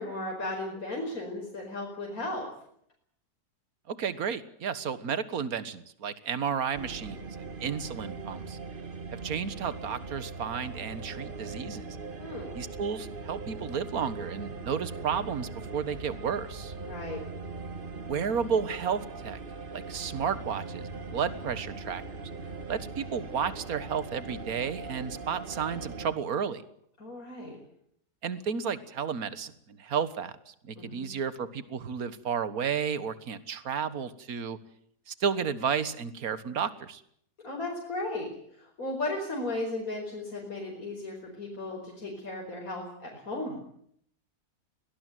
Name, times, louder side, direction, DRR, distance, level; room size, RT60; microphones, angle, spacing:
voice 1, 0.0-2.5 12.2-12.5 16.8-17.2 27.0-27.6 30.8-31.1 37.4-43.6, left 2 dB, 60° left, -1 dB, 5.5 m, -35 dB
voice 2, 3.9-8.6 9.1-12.0 12.5-16.7 18.0-19.4 19.7-22.2 22.7-26.6 28.2-34.6 35.1-37.0, right 7 dB, 65° right, 14 dB, 1.9 m, -32 dB
sound 1, 6.7-26.1, right 4 dB, 35° right, 1.4 m, -40 dB
22.5 x 19.0 x 9.2 m, 0.68 s
omnidirectional pair, 1.7 m